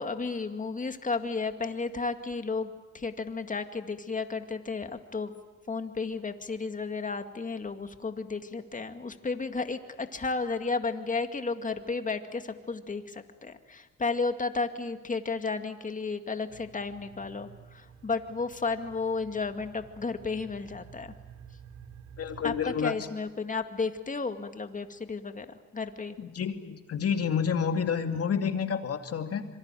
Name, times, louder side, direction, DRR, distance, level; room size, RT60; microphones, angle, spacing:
voice 1, 0.0-5.3 5.7-21.1 22.4-26.2, left 4 dB, 25° left, 8 dB, 2.1 m, -33 dB
sound 1, 16.5-22.8, right 7 dB, 75° right, 4.4 m, -51 dB
voice 2, 22.2-22.9 26.2-29.5, left 7 dB, 50° left, 6 dB, 2.5 m, -29 dB
26.0 x 23.5 x 9.1 m, 1.2 s
cardioid pair, 90°, 30 cm